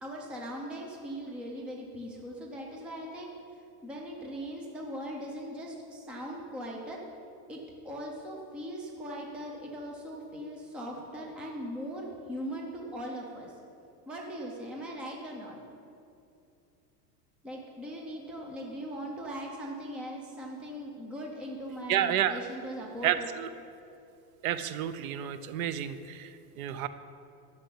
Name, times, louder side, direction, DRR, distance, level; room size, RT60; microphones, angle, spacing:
voice 1, 0.0-3.3 3.8-7.0 7.5-13.6 14.1-15.6 17.4-23.3, equal, ahead, -1 dB, 0.5 m, -40 dB
voice 2, 21.9-22.4 23.0-23.5 24.4-26.9, right 10 dB, 55° right, 12 dB, 0.7 m, -30 dB
11.5 x 6.9 x 8.3 m, 2.6 s
supercardioid pair, 170°, 50 cm